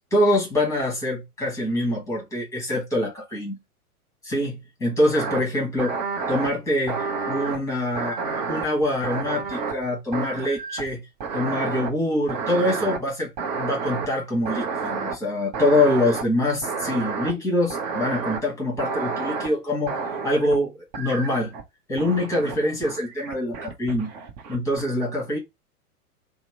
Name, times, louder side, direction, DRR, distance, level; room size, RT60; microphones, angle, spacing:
voice 1, 0.1-3.6 4.2-5.9 6.3-11.0 11.3-19.9 20.2-21.5 21.9-24.1 24.5-25.4, left 1 dB, 5° left, 1.2 m, -24 dB
sound 1, 5.1-5.4 5.8-6.5 6.9-7.6 8.0-9.8 10.1-11.0 11.2-11.9 12.3-13.0 13.4-14.1 14.4-15.2 15.5-16.2 16.6-17.3 17.7-18.4 18.8-19.5 19.9-20.6 20.9-21.6 22.0-22.6 22.8-24.8, right 5 dB, 30° right, 0.7 m, -30 dB
2.9 x 2.0 x 3.3 m
figure-of-eight pair, 105°, 45 cm